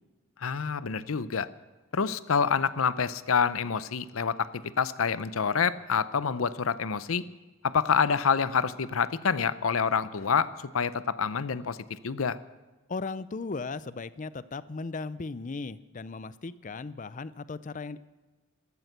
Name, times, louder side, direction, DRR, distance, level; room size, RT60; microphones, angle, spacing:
voice 1, 0.4-1.5 1.9-7.2 7.6-10.5 10.7-12.4, left 6 dB, 85° left, 15 dB, 0.6 m, -27 dB
voice 2, 12.9-18.0, left 3 dB, 40° left, 17 dB, 0.5 m, -37 dB
14.0 x 13.5 x 6.7 m, 1.2 s
head